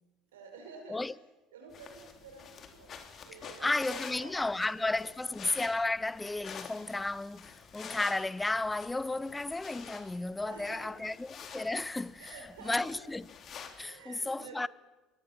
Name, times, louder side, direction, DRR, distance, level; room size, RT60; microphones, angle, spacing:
voice 1, 0.3-1.1 1.5-5.3 8.9-9.3 10.4-11.1 12.2-13.0 13.8-14.6, right 4 dB, 75° right, 5.6 m, -50 dB
sound 1, 1.7-13.8, left 7 dB, 40° left, 3.8 m, -48 dB
voice 2, 3.6-12.4 12.6-13.2 13.8-14.7, left 2 dB, 15° left, 0.8 m, -33 dB
27.5 x 23.0 x 7.3 m
figure-of-eight pair, 60°, 0 cm